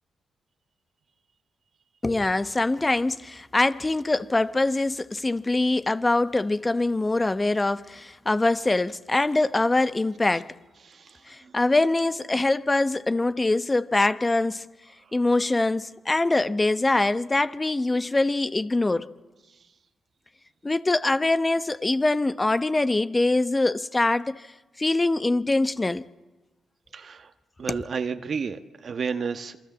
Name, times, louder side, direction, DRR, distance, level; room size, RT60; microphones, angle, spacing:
voice 1, 2.0-10.5 11.3-14.7 15.1-19.1 20.6-24.5 24.8-26.0 27.7-27.8, left 2 dB, 25° left, 1.1 m, -23 dB
voice 2, 10.8-11.5 15.0-15.1 19.5-19.6 26.9-27.3 27.6-29.6, right 5 dB, 60° right, 1.4 m, -32 dB
27.5 x 24.0 x 7.4 m
supercardioid pair, 55°, 0 cm